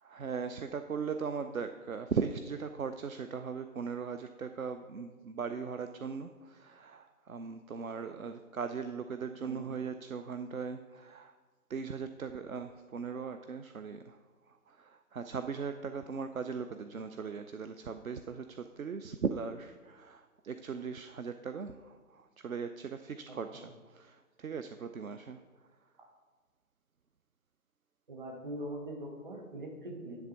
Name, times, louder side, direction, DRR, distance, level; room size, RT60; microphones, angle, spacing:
voice 1, 0.0-11.3 11.7-14.2 14.5-25.4, right 5 dB, 65° right, 9 dB, 0.5 m, -39 dB
voice 2, 9.4-9.7 23.3-23.6 28.1-30.3, right 1 dB, 30° right, 2 dB, 1.3 m, -42 dB
10.5 x 3.5 x 7.0 m, 1.4 s
figure-of-eight pair, 145°, 46 cm